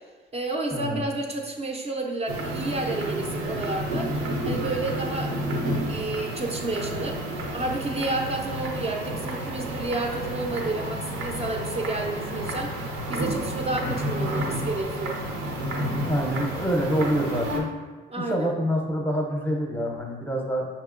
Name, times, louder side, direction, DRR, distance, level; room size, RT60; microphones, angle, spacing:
voice 1, 0.3-4.1 4.4-7.2 7.5-12.8 13.1-15.2 18.1-18.5, right 2 dB, 30° right, 1 dB, 0.4 m, -30 dB
sound 1, 2.3-17.6, right 1 dB, 90° right, 0.7 m, -30 dB
voice 2, 16.0-17.7 18.2-20.7, equal, 10° left, 0 dB, 0.6 m, -26 dB
5.2 x 2.8 x 2.4 m, 1.3 s
cardioid pair, 90°, 20 cm